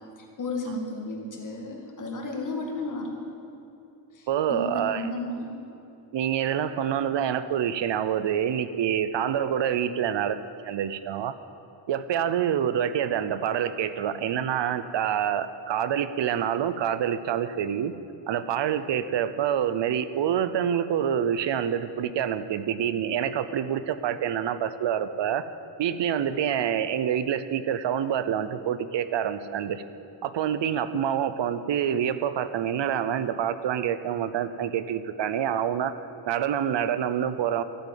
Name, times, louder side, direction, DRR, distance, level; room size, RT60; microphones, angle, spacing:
voice 1, 0.2-3.1 4.1-5.6, left 2 dB, 45° left, 0 dB, 2.1 m, -33 dB
voice 2, 4.3-5.0 6.1-11.3 11.9-17.9 18.3-25.5 25.8-29.8 30.2-35.9 36.3-37.6, right 9 dB, 70° right, 13 dB, 0.7 m, -27 dB
13.0 x 9.1 x 7.6 m, 2.8 s
wide cardioid pair, 170°, 44 cm